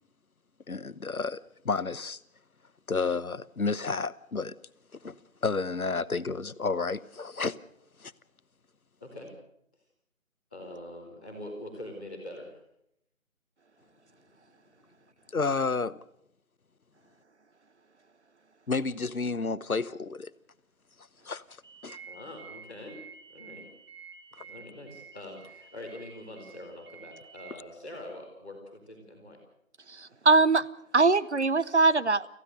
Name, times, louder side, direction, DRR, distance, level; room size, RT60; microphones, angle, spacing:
voice 1, 0.7-2.2 2.9-4.5 5.0-5.1 5.4-7.6 8.0-8.1 15.3-16.0 18.7-20.3 21.2-21.4 21.8-22.0 24.3-24.4, left 4 dB, 85° left, 1.0 m, -31 dB
voice 2, 10.5-12.6 22.1-22.9 23.3-23.7 24.4-29.4, left 1 dB, 5° left, 1.4 m, -44 dB
sound 1, 21.6-27.5, right 6 dB, 20° right, 1.4 m, -50 dB
voice 3, 30.0-30.6 30.9-32.3, right 3 dB, 55° right, 0.9 m, -22 dB
27.0 x 15.5 x 6.5 m
figure-of-eight pair, 165°, 42 cm